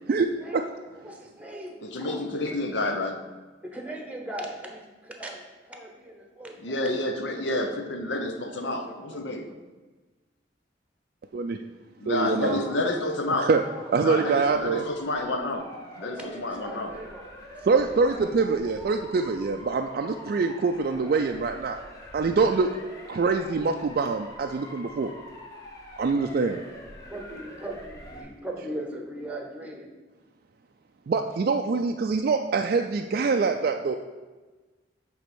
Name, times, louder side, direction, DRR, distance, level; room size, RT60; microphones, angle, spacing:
voice 1, 0.1-0.6 1.0-2.6 3.6-7.1 8.1-8.2 8.6-9.6 12.2-14.7 16.0-17.7 18.0-18.3 26.3-26.7 27.0-29.9, right 1 dB, 5° right, 2 dB, 1.0 m, -40 dB
voice 2, 1.8-3.3 6.6-9.5 12.0-13.5 14.0-16.9, left 2 dB, 75° left, 5 dB, 0.9 m, -29 dB
voice 3, 12.1-12.6 13.4-13.6 13.9-14.9 17.7-21.8 22.1-22.7 23.1-25.1 26.0-26.6 31.1-33.9, right 4 dB, 55° right, 4 dB, 0.4 m, -24 dB
Motor vehicle (road) / Siren, 14.4-28.2, equal, 20° left, 1.2 m, -45 dB
8.2 x 3.6 x 6.0 m, 1.3 s
head